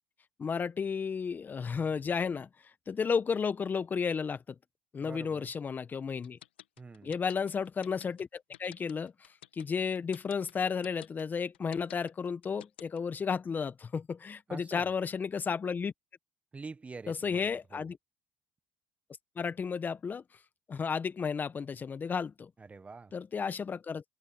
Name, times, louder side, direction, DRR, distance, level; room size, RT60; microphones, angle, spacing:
voice 1, 0.4-2.5 2.9-4.4 4.9-6.4 7.0-9.1 9.5-15.9 17.1-18.0 19.4-20.2 20.7-22.5 23.1-24.0, left 6 dB, 35° left, 1.6 m, -33 dB
voice 2, 5.0-5.5 6.8-7.2 14.5-14.9 16.5-17.9 22.6-23.1, right 4 dB, 25° right, 1.5 m, -46 dB
sound 1, 6.2-13.2, left 12 dB, 90° left, 2.1 m, -51 dB
open air
hypercardioid pair, 70°, 6 cm